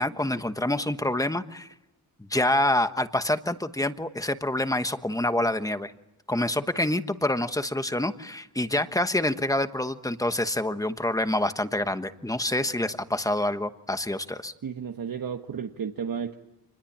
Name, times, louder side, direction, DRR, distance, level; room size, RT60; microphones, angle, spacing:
voice 1, 0.0-1.7 2.3-5.9 6.3-14.5, left 1 dB, 10° left, 9 dB, 1.2 m, -27 dB
voice 2, 14.6-16.3, right 7 dB, 65° right, 4 dB, 1.5 m, -33 dB
28.0 x 21.0 x 8.7 m, 0.93 s
wide cardioid pair, 140°, 37 cm